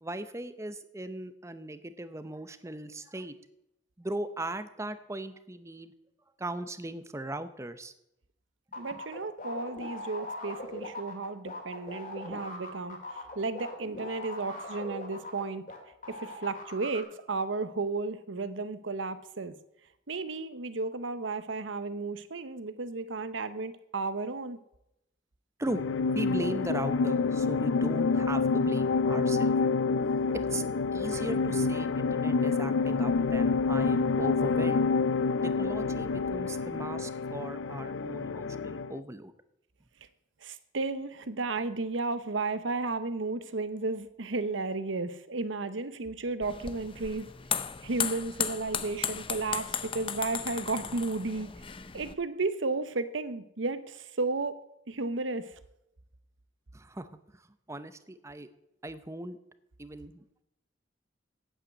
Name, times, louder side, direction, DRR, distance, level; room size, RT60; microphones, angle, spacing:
voice 1, 0.0-3.3 4.0-5.9 6.4-7.9 25.6-25.8 26.1-29.5 30.3-30.6 30.9-34.9 35.4-39.3 56.7-58.5 58.8-59.4 59.8-60.2, right 1 dB, 15° right, 12 dB, 0.7 m, -38 dB
sound 1, 8.7-15.8 16.0-17.0, left 2 dB, 45° left, 2.8 m, -40 dB
voice 2, 8.8-15.6 16.1-19.5 20.1-24.6 40.4-47.3 47.8-51.5 51.9-54.6 54.9-55.5, right 3 dB, 90° right, 12 dB, 0.9 m, -33 dB
sound 2, 25.7-39.0, left 4 dB, 85° left, 0.4 m, -28 dB
sound 3, 46.4-52.1, left 7 dB, 30° left, 0.6 m, -35 dB
8.8 x 8.0 x 8.1 m, 0.82 s
head